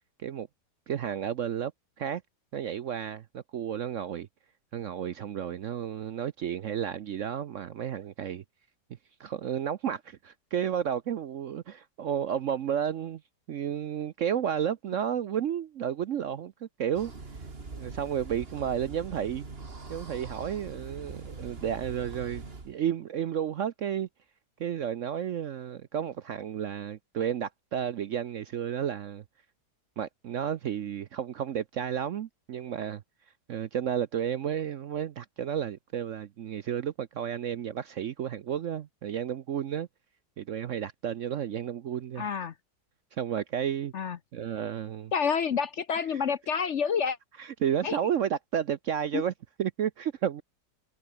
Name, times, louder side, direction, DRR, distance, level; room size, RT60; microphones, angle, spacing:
voice 1, 0.9-1.7 2.0-2.2 2.5-4.3 4.7-8.4 9.2-13.2 13.5-17.1 17.7-19.4 19.9-24.1 24.6-29.2 30.0-33.0 33.5-39.9 40.4-42.3 43.1-43.9 44.3-45.1 47.4-49.3 49.6-50.4, right 9 dB, 60° right, 0.9 m, -32 dB
sound 1, 16.9-22.7, right 3 dB, 35° right, 2.5 m, -42 dB
voice 2, 42.2-42.5 43.9-44.2 45.1-47.2 47.8-48.0 49.1-49.2, left 6 dB, 55° left, 0.9 m, -28 dB
omnidirectional pair, 1.8 m